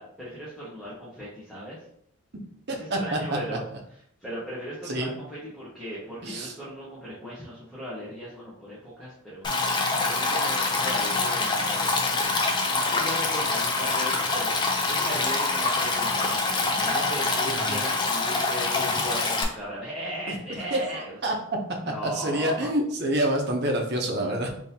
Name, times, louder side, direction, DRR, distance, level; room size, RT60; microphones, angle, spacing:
voice 1, 0.0-1.8 2.7-3.6 4.2-21.4 21.8-22.7, equal, ahead, -9 dB, 0.8 m, -37 dB
voice 2, 2.7-3.4 4.9-5.1 6.2-6.5 17.5-17.8 20.3-20.4 20.7-21.3 22.0-24.5, right 1 dB, 50° right, 3 dB, 0.6 m, -27 dB
Stream, 9.4-19.4, left 3 dB, 20° left, 0.3 m, -25 dB
3.7 x 2.6 x 2.7 m, 0.68 s
head